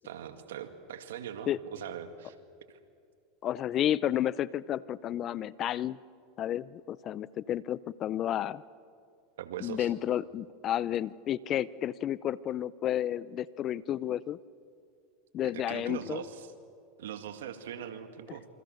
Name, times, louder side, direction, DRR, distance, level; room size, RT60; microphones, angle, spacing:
voice 1, 0.0-2.4 2.7-2.8 9.4-9.9 15.5-16.5 17.0-18.5, right 8 dB, 80° right, 8 dB, 2.1 m, -41 dB
voice 2, 3.4-6.0 6.4-8.6 9.6-14.4 15.3-16.2, left 11 dB, 40° left, 20 dB, 0.6 m, -31 dB
27.5 x 26.5 x 6.6 m, 2.4 s
hypercardioid pair, 100°, 0 cm